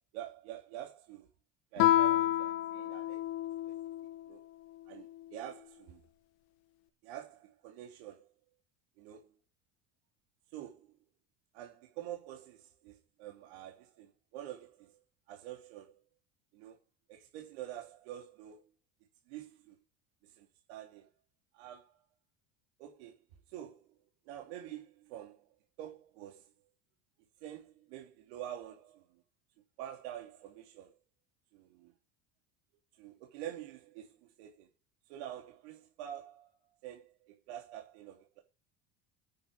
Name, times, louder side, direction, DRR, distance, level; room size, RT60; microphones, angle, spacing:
voice 1, 0.1-1.3 1.7-3.2 4.3-4.4 4.9-6.0 7.0-8.3 9.0-9.3 10.5-10.9 11.5-14.9 15.3-16.0 16.5-16.8 17.1-18.6 19.3-19.8 20.2-21.1 21.5-22.0 22.8-23.2 23.5-23.8 24.3-25.4 25.8-26.5 27.4-29.0 29.8-30.9 31.5-31.9 33.0-34.7 35.1-36.5 36.8-38.4, right 11 dB, 80° right, 3.1 m, -47 dB
Guitar, 1.8-4.2, left 13 dB, 80° left, 1.9 m, -29 dB
10.5 x 8.9 x 8.6 m
cardioid pair, 175°, 32 cm